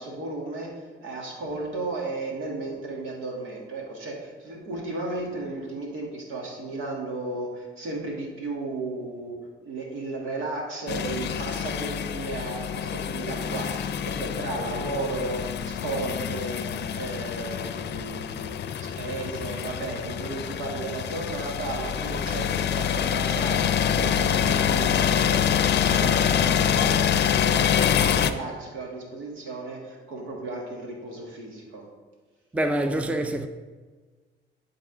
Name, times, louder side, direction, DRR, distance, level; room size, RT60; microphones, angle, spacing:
voice 1, 0.0-9.4 9.6-13.7 14.0-31.8, right 2 dB, 90° right, 1.9 m, -34 dB
sound 1, 10.9-28.3, left 8 dB, 60° left, 0.5 m, -26 dB
voice 2, 32.5-33.5, right 1 dB, 5° right, 0.5 m, -25 dB
11.5 x 4.0 x 3.9 m
cardioid pair, 90°, 20 cm